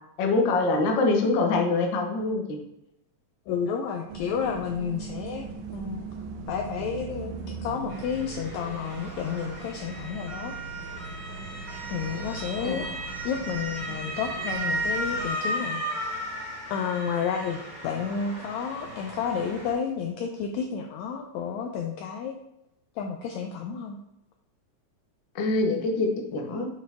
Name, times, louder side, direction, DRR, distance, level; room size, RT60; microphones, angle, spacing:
voice 1, 0.2-2.6 12.6-12.9 25.3-26.7, left 3 dB, 65° left, 2 dB, 1.2 m, -24 dB
voice 2, 3.5-6.1 6.5-7.3 7.6-10.6 11.9-12.9 13.2-15.8 16.1-16.2 16.7-17.6 17.8-22.4 23.0-23.9, left 7 dB, 80° left, 3 dB, 1.7 m, -31 dB
sound 1, 4.1-15.3, right 4 dB, 85° right, 2.1 m, -40 dB
Motor vehicle (road) / Siren, 7.9-19.7, right 1 dB, 30° right, 0.7 m, -35 dB
8.5 x 4.6 x 3.5 m, 0.87 s
omnidirectional pair, 3.6 m